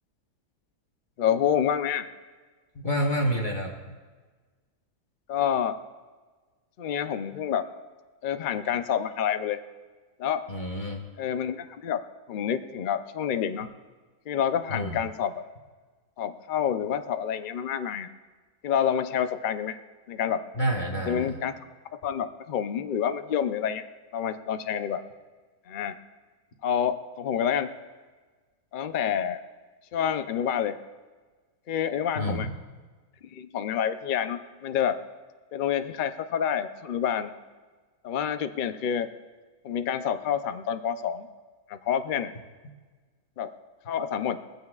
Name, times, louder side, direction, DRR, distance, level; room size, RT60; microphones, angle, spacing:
voice 1, 1.2-2.1 5.3-5.8 6.8-7.6 8.2-9.6 10.2-10.5 11.2-12.0 12.3-13.7 14.3-15.4 16.2-18.1 18.6-19.8 20.1-20.4 21.1-21.5 22.0-23.8 24.1-25.0 25.7-25.9 26.6-27.7 28.7-29.4 29.9-30.8 31.7-32.5 33.3-35.0 35.5-37.3 38.0-39.1 39.6-41.3 41.7-42.3 43.4-43.6 43.9-44.4, left 8 dB, 55° left, 9 dB, 0.5 m, -28 dB
voice 2, 2.7-4.0 10.5-11.1 14.7-15.0 20.6-21.4 32.1-32.5, equal, 35° left, 0 dB, 1.1 m, -29 dB
21.0 x 15.5 x 2.4 m, 1.4 s
omnidirectional pair, 1.6 m